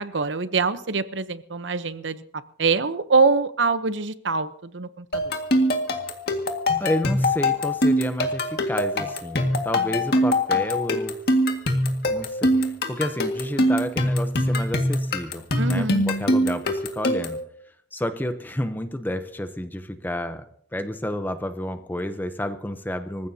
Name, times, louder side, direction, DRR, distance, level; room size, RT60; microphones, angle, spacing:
voice 1, 0.0-2.2 2.6-5.3 15.6-16.1, right 4 dB, 90° right, 13 dB, 0.8 m, -24 dB
sound 1, 5.1-17.4, left 1 dB, 60° left, 1.9 m, -23 dB
voice 2, 6.8-11.2 12.1-17.4 17.9-20.4 20.7-23.3, left 1 dB, 10° left, 9 dB, 0.7 m, -30 dB
26.5 x 15.0 x 2.8 m, 0.65 s
head